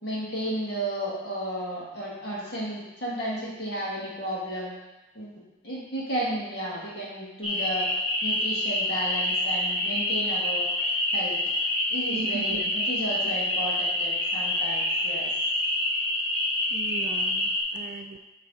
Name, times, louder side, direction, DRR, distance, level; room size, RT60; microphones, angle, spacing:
voice 1, 0.0-4.7 5.2-5.3 5.6-7.9 8.2-10.7 11.1-11.4 11.9-15.3, right 1 dB, 60° left, -6 dB, 1.7 m, -33 dB
sound 1, 7.4-17.6, left 1 dB, 30° left, 1.1 m, -27 dB
voice 2, 12.1-12.7 16.7-18.2, right 3 dB, 40° right, 4 dB, 0.3 m, -37 dB
9.8 x 3.3 x 3.9 m, 1.0 s
head